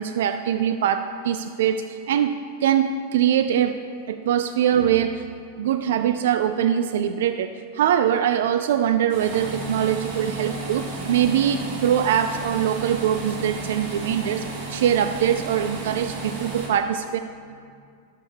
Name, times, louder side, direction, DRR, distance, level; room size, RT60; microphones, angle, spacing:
voice 1, 0.0-2.3 2.6-3.8 4.1-5.3 5.6-7.5 7.7-17.2, right 9 dB, 80° right, 9 dB, 0.3 m, -22 dB
sound 1, 9.1-16.7, right 3 dB, 55° right, 1.9 m, -33 dB
13.0 x 6.5 x 3.5 m, 2.3 s
supercardioid pair, 150°, 0 cm